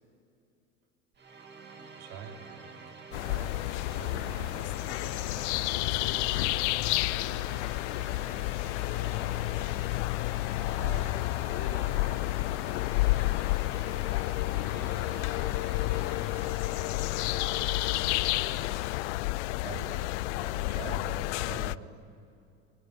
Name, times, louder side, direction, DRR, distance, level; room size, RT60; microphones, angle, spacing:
sound 1, 1.1-19.1, right 4 dB, 30° right, 2.9 m, -48 dB
voice 1, 2.0-2.8 3.1-4.5 10.5-11.2 19.6-22.0, right 6 dB, 75° right, 3 dB, 3.3 m, -44 dB
sound 2, 3.1-21.8, left 20 dB, 85° left, 0.5 m, -30 dB
voice 2, 3.9-6.6 6.9-7.5 7.8-9.4 11.4-13.7 14.4-18.1, left 5 dB, 45° left, 2 dB, 3.5 m, -47 dB
23.5 x 19.0 x 9.8 m, 2.6 s
supercardioid pair, 100°, 34 cm